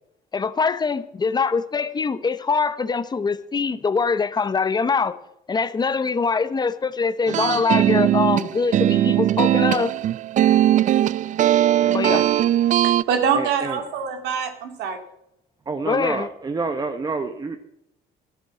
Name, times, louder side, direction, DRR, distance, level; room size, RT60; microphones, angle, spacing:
voice 1, 0.3-5.1 5.5-9.9 11.9-12.3 15.8-16.3, left 5 dB, 25° left, 13 dB, 0.9 m, -23 dB
sound 1, 7.3-13.0, right 12 dB, 50° right, 0.4 m, -19 dB
voice 2, 11.8-12.3 13.3-13.8 15.7-17.6, right 4 dB, 25° right, 7 dB, 0.9 m, -28 dB
voice 3, 12.8-15.0, right 7 dB, 85° right, 6 dB, 2.3 m, -24 dB
12.0 x 8.1 x 7.1 m, 0.78 s
cardioid pair, 110°, 17 cm